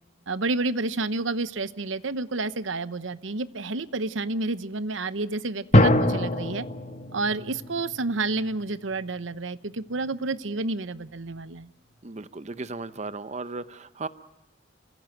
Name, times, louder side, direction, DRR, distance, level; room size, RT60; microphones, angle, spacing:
voice 1, 0.3-6.7 7.1-11.7, right 3 dB, 85° right, 14 dB, 0.9 m, -29 dB
sound 1, 5.7-9.2, left 1 dB, 40° left, 1.4 m, -24 dB
voice 2, 12.0-14.1, right 3 dB, 35° right, 13 dB, 0.8 m, -36 dB
29.5 x 16.0 x 8.9 m, 1.1 s
head